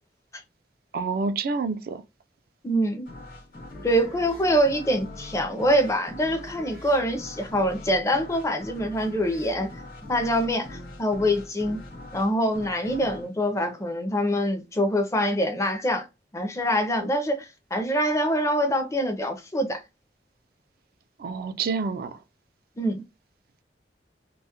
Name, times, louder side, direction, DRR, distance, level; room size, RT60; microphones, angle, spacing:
voice 1, 0.9-2.0 21.2-22.1, right 4 dB, 55° right, 0.3 m, -28 dB
voice 2, 2.6-3.1 3.8-9.7 10.1-11.8 12.1-16.1 16.3-19.8 22.8-23.0, equal, 15° left, 0.5 m, -25 dB
sound 1, 3.1-14.5, left 1 dB, 55° left, 0.9 m, -43 dB
2.3 x 2.1 x 2.7 m
head